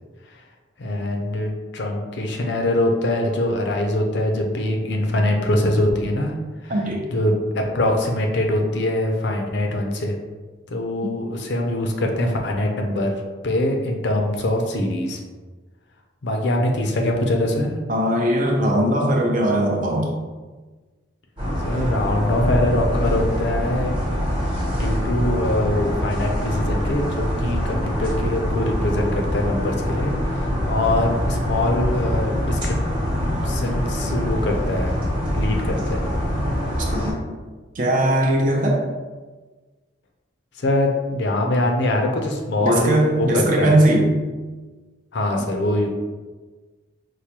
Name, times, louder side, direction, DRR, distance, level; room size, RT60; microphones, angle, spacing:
voice 1, 0.8-6.3 6.6-6.7 7.1-10.2 10.7-13.2 13.4-15.2 16.2-17.7 21.6-23.9 24.7-32.7 33.4-35.0 35.3-36.1 40.6-43.8 45.1-45.9, left 1 dB, 65° left, 2 dB, 0.5 m, -23 dB
voice 2, 6.7-7.1 17.9-20.1 36.9-37.2 37.8-38.8 42.6-44.1, right 1 dB, 45° right, -1 dB, 0.6 m, -19 dB
sound 1, 21.4-37.1, equal, 25° right, 1.0 m, -24 dB
4.7 x 2.1 x 2.9 m, 1.3 s
head